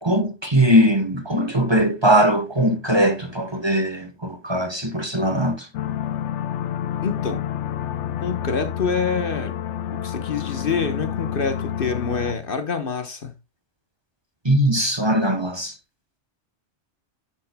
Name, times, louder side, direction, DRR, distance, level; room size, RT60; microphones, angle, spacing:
voice 1, 0.0-5.7 14.4-15.8, equal, 25° right, 1.2 m, -20 dB
sound 1, 5.7-12.3, left 9 dB, 85° left, 0.9 m, -29 dB
voice 2, 7.0-7.4 8.2-9.6 9.9-13.3, left 5 dB, 50° left, 1.3 m, -26 dB
11.0 x 7.4 x 2.2 m
omnidirectional pair, 1.2 m